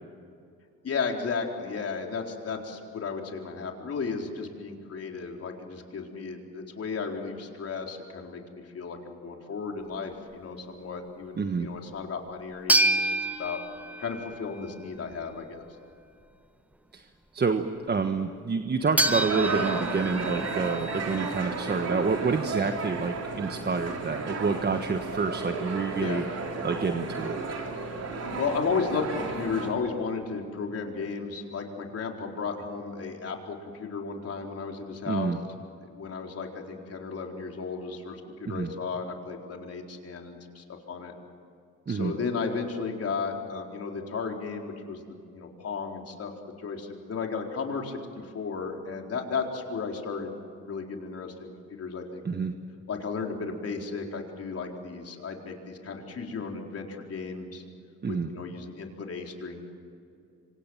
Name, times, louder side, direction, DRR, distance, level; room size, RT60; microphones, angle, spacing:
voice 1, 0.8-13.6 14.0-15.7 26.0-26.2 28.1-35.3 35.8-41.1 41.9-46.3 46.6-52.2 52.9-57.6 58.1-59.6, left 5 dB, 50° left, 2 dB, 4.3 m, -34 dB
voice 2, 11.4-11.7 16.9-17.1 17.3-26.2 26.6-27.4 35.1-35.4 38.4-38.7 41.9-42.1 52.2-52.5 58.0-58.3, right 4 dB, 35° right, 7 dB, 1.4 m, -28 dB
sound 1, 12.7-14.7 19.0-22.1, right 1 dB, 5° right, 1.4 m, -28 dB
sound 2, 19.0-29.7, right 4 dB, 55° right, 4.4 m, -33 dB
26.5 x 25.5 x 7.4 m, 2.4 s
cardioid pair, 90°, 30 cm